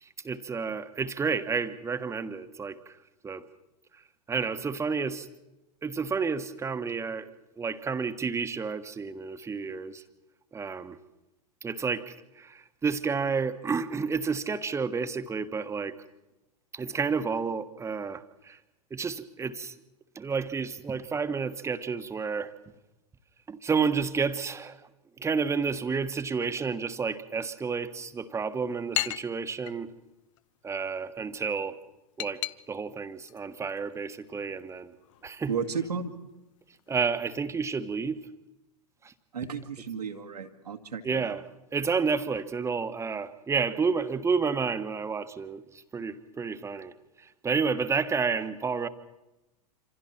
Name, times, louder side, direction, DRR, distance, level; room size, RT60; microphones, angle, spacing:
voice 1, 0.0-3.0 3.2-3.4 4.3-5.3 5.8-7.3 7.6-10.0 10.5-11.0 11.6-15.9 16.7-18.6 18.9-19.7 20.1-22.5 23.5-24.8 25.2-29.9 30.6-31.7 32.2-32.4 32.7-34.9 35.2-35.5 36.9-38.2 39.0-39.1 41.0-41.4 41.7-48.9, right 5 dB, 15° right, 10 dB, 1.4 m, -30 dB
sound 1, 28.1-38.1, left 14 dB, 55° left, 0.8 m, -41 dB
voice 2, 35.5-36.1 39.3-41.4, right 6 dB, 80° right, 3 dB, 2.2 m, -33 dB
27.5 x 26.5 x 4.5 m, 0.98 s
figure-of-eight pair, 100°, 20 cm